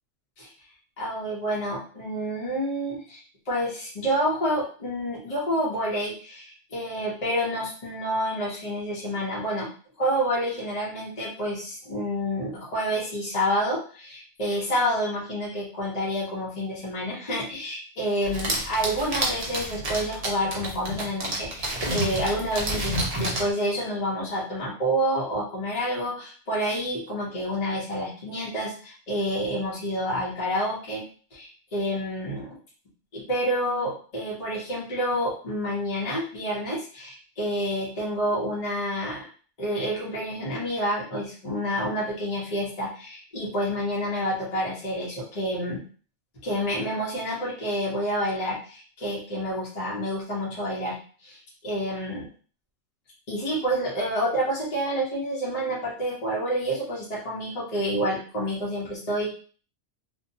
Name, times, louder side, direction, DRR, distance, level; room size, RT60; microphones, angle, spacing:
voice 1, 1.0-3.2 3.5-9.7 10.0-31.0 31.3-32.6 33.1-39.3 39.6-45.8 46.4-51.0 51.2-51.4 51.6-52.3 53.3-59.3, equal, 35° left, -5 dB, 0.7 m, -28 dB
sound 1, 18.2-23.5, right 1 dB, 45° right, 0.5 m, -29 dB
2.7 x 2.2 x 2.7 m, 0.41 s
omnidirectional pair, 1.4 m